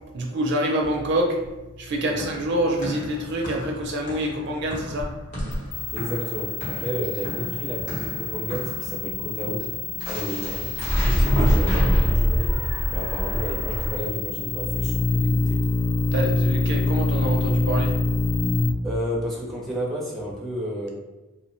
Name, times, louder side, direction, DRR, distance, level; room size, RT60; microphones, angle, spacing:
voice 1, 0.1-1.4 1.8-5.1 16.1-17.9, right 1 dB, 50° right, 1 dB, 0.4 m, -26 dB
sound 1, 0.8-18.7, left 3 dB, 55° left, 0.4 m, -28 dB
sound 2, 2.0-8.9 10.0-13.9, equal, 40° left, 0.8 m, -26 dB
voice 2, 5.9-9.7 10.1-15.7 18.8-20.9, equal, ahead, -4 dB, 0.5 m, -32 dB
2.8 x 2.0 x 2.9 m, 1.1 s
head